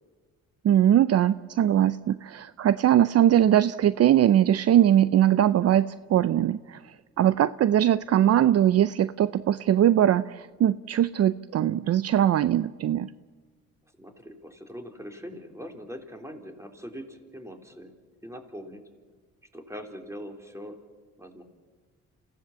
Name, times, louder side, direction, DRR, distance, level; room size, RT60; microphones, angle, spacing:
voice 1, 0.6-6.8 7.2-13.1, right 11 dB, 55° right, 15 dB, 0.6 m, -21 dB
voice 2, 14.0-18.0 18.2-18.8 19.5-20.8 21.2-21.4, equal, 10° right, 4 dB, 3.4 m, -42 dB
28.0 x 16.5 x 7.1 m, 1.5 s
cardioid pair, 90°, 30 cm